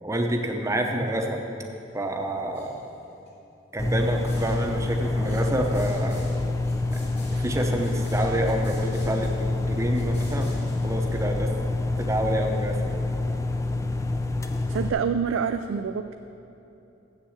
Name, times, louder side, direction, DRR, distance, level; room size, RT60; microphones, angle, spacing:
voice 1, 0.0-1.4 1.9-2.9 3.7-6.3 6.9-7.0 7.3-10.5 10.8-11.5 12.0-13.0, right 1 dB, 15° right, 3 dB, 0.7 m, -28 dB
sound 1, 1.7-2.1 2.3-3.3 4.0-11.3, left 1 dB, 60° left, 2.1 m, -50 dB
sound 2, 3.8-14.9, left 2 dB, 15° left, 0.4 m, -27 dB
voice 2, 14.7-16.1, right 6 dB, 85° right, 8 dB, 0.3 m, -26 dB
7.5 x 7.4 x 7.2 m, 2.9 s
head